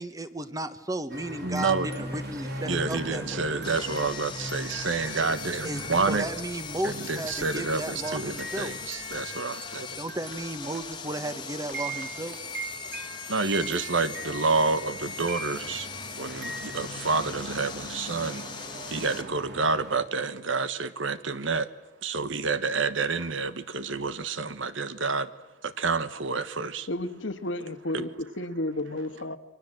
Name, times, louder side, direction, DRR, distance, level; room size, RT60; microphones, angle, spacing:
voice 1, 0.0-3.4 5.6-8.7 9.9-12.4, right 1 dB, 20° right, 1.3 m, -34 dB
sound 1, 1.1-20.0, right 1 dB, 55° right, 3.3 m, -40 dB
voice 2, 1.4-1.9 2.6-6.3 6.8-9.9 13.3-15.9 16.2-18.4 18.9-21.7 22.0-25.3 25.6-26.9 27.9-28.1, right 4 dB, 80° right, 1.3 m, -29 dB
Sawing, 3.6-19.2, left 6 dB, 25° left, 1.5 m, -40 dB
voice 3, 26.9-29.4, left 1 dB, 75° left, 1.6 m, -32 dB
29.5 x 24.0 x 7.9 m
head